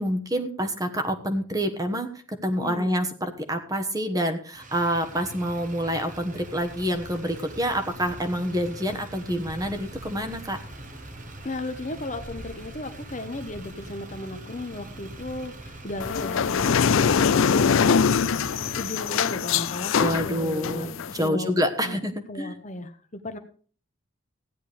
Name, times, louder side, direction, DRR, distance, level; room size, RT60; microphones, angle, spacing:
voice 1, 0.0-10.6 20.0-22.6, equal, 15° right, 7 dB, 1.2 m, -27 dB
voice 2, 2.6-2.9 11.4-18.0 18.8-20.9 21.2-21.5 21.8-22.0 22.3-23.4, left 2 dB, 35° left, 7 dB, 1.0 m, -35 dB
Motor vehicle (road), 4.5-19.2, right 1 dB, 40° right, 1.2 m, -42 dB
sound 1, 16.0-21.3, left 6 dB, 70° left, 0.4 m, -23 dB
16.0 x 10.0 x 3.5 m, 0.41 s
head